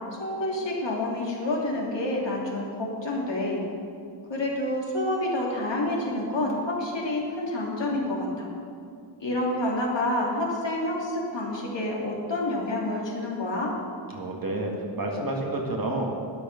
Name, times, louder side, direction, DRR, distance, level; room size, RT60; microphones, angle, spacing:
voice 1, 0.2-3.6 4.3-8.5 9.2-13.7, left 1 dB, 70° left, -3 dB, 3.0 m, -28 dB
voice 2, 14.1-16.1, right 2 dB, 50° right, 0 dB, 2.2 m, -29 dB
12.5 x 10.0 x 5.4 m, 2.4 s
wide cardioid pair, 85°, 45 cm